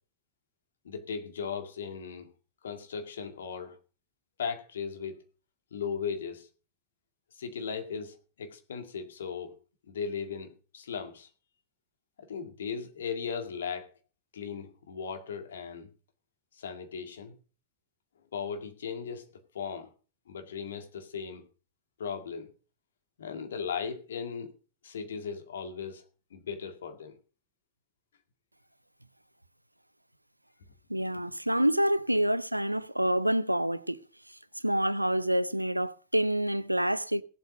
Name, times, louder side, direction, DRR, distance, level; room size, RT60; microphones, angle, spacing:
voice 1, 0.8-2.3 2.6-3.8 4.4-5.2 5.7-6.5 7.3-9.6 9.9-11.3 12.2-13.9 14.3-15.9 16.5-17.3 18.3-19.9 20.3-21.5 22.0-22.5 23.2-24.5 24.8-26.0 26.3-27.2, left 6 dB, 65° left, 2.1 m, -37 dB
voice 2, 30.9-34.0 34.6-37.2, right 1 dB, 90° right, 0.6 m, -27 dB
17.0 x 8.0 x 5.2 m
figure-of-eight pair, 90°, 0 cm